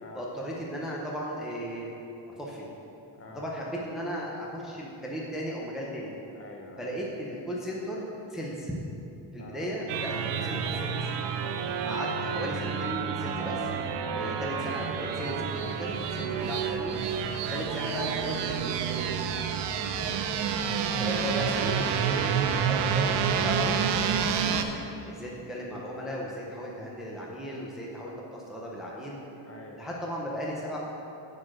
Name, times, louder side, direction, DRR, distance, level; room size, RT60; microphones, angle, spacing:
voice 1, 0.2-1.9 2.4-2.7 3.3-6.2 6.8-8.7 9.3-11.1 11.8-13.7 14.1-17.0 17.5-19.2 21.0-24.7 25.1-29.2 29.8-30.8, equal, ahead, -4 dB, 0.7 m, -36 dB
voice 2, 3.1-3.5 6.3-7.0 9.4-9.6 11.3-11.6 17.3-17.5 19.9-20.1 24.8-24.9 29.4-29.8, left 3 dB, 30° left, 1 dB, 0.9 m, -47 dB
sound 1, 9.9-24.6, right 7 dB, 70° right, 0.7 m, -29 dB
9.5 x 4.3 x 7.4 m, 2.9 s
cardioid pair, 180°, 44 cm